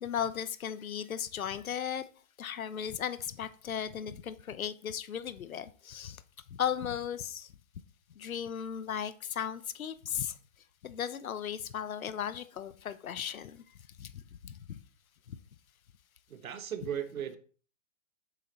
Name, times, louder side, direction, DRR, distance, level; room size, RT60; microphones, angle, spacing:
voice 1, 0.0-2.0 2.4-6.2 6.5-7.5 8.2-10.3 10.8-13.6 14.0-14.5, left 8 dB, 90° left, 13 dB, 0.9 m, -36 dB
voice 2, 16.3-17.4, right 9 dB, 85° right, 9 dB, 1.2 m, -36 dB
7.6 x 6.5 x 4.4 m, 0.42 s
hypercardioid pair, 145°, 41 cm